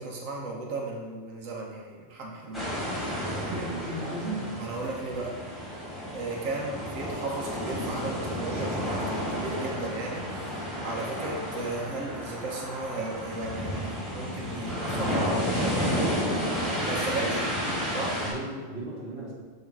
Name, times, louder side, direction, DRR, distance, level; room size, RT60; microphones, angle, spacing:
voice 1, 0.0-2.7 4.6-5.3 6.1-10.5 10.8-13.8 14.1-16.0 16.9-17.4 17.9-18.1, right 2 dB, 90° right, -1 dB, 1.3 m, -35 dB
sound 1, 2.5-18.3, equal, ahead, 1.4 m, -31 dB
voice 2, 3.2-4.6 17.3-17.4 18.2-19.3, right 1 dB, 45° right, -4 dB, 1.3 m, -35 dB
6.6 x 3.1 x 4.6 m, 1.5 s
omnidirectional pair, 1.3 m